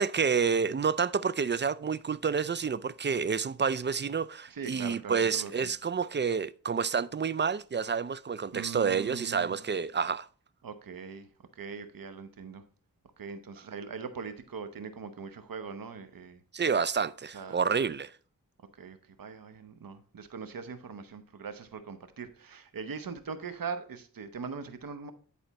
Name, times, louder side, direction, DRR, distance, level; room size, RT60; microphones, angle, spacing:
voice 1, 0.0-10.3 16.5-18.1, right 6 dB, 35° right, 0.4 m, -29 dB
voice 2, 4.5-5.7 8.5-9.6 10.6-11.3 11.5-12.6 13.2-16.4 17.3-17.6 18.8-25.1, right 5 dB, 85° right, 0.9 m, -41 dB
10.5 x 4.3 x 4.1 m
cardioid pair, 50°, 33 cm